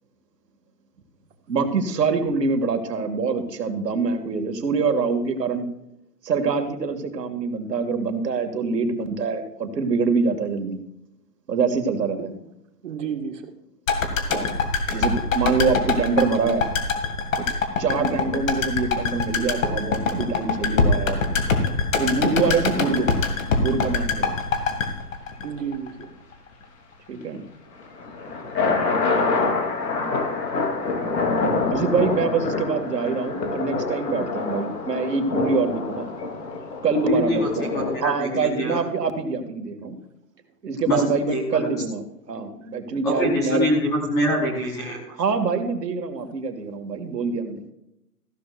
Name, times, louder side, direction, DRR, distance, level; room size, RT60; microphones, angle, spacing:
voice 1, 1.5-5.7 6.2-10.8 11.5-12.3 14.3-14.6 14.9-16.6 17.4-17.5 17.8-21.3 22.0-23.1 23.6-24.3 27.1-27.4 28.6-28.7 31.7-36.1 36.8-37.7 38.0-40.0 40.6-43.7 45.1-47.6, right 4 dB, 85° right, 6 dB, 2.3 m, -25 dB
voice 2, 12.8-13.5 25.4-26.1, right 7 dB, 50° right, 4 dB, 1.9 m, -31 dB
sound 1, 13.9-26.0 26.3-26.4, left 4 dB, 55° left, 2.4 m, -24 dB
sound 2, 27.8-38.0, left 3 dB, 80° left, 3.3 m, -26 dB
voice 3, 37.1-38.8 40.9-41.7 43.0-45.0, equal, 5° left, -2 dB, 0.9 m, -24 dB
15.0 x 13.0 x 2.6 m, 0.85 s
hypercardioid pair, 170°, 48 cm